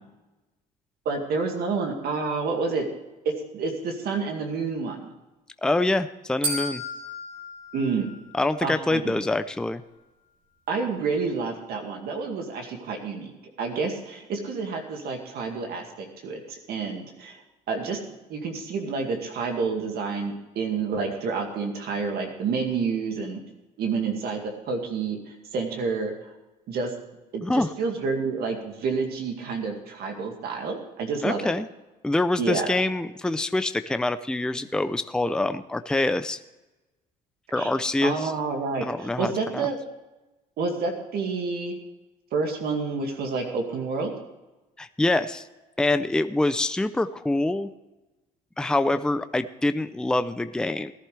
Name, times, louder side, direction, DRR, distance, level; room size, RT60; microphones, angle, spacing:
voice 1, 1.1-2.9 3.3-5.1 7.7-8.1 8.6-9.1 10.7-13.3 13.6-17.4 17.7-18.0 18.3-23.4 23.8-26.3 26.7-26.9 27.3-31.5 32.4-32.8 37.6-37.7 38.0-39.8 40.6-41.8 42.3-44.1, right 4 dB, 70° right, 2 dB, 2.2 m, -29 dB
voice 2, 5.6-6.8 8.3-9.8 27.4-27.7 31.2-31.7 32.0-36.4 37.5-38.3 38.8-39.7 44.8-45.4 45.8-47.7 48.6-50.9, left 2 dB, 5° left, 10 dB, 0.5 m, -25 dB
sound 1, 6.4-8.7, equal, 50° right, 4.3 m, -33 dB
17.5 x 11.5 x 3.4 m, 1.1 s
cardioid pair, 110°, 17 cm